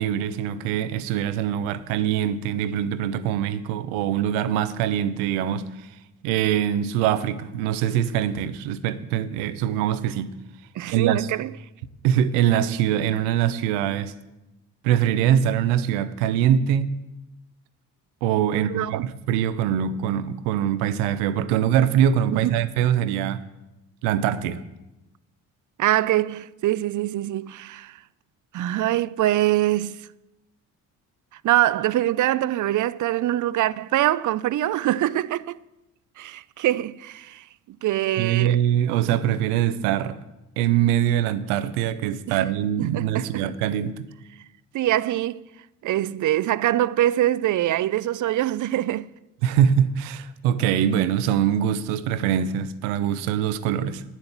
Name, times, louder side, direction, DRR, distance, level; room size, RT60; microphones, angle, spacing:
voice 1, 0.0-5.9 6.2-10.3 10.9-11.3 12.0-14.1 14.8-16.9 18.2-23.4 24.0-24.6 38.2-40.2 40.6-44.1 49.4-54.0, right 10 dB, 85° right, 0.7 m, -23 dB
voice 2, 10.8-11.5 18.5-19.1 22.3-22.6 25.8-28.0 28.5-30.0 31.4-35.6 36.2-37.4 37.8-38.6 42.3-42.4 42.9-43.4 44.7-45.4 45.8-49.1, right 14 dB, 50° right, 0.5 m, -24 dB
9.7 x 7.2 x 8.0 m
hypercardioid pair, 55°, 41 cm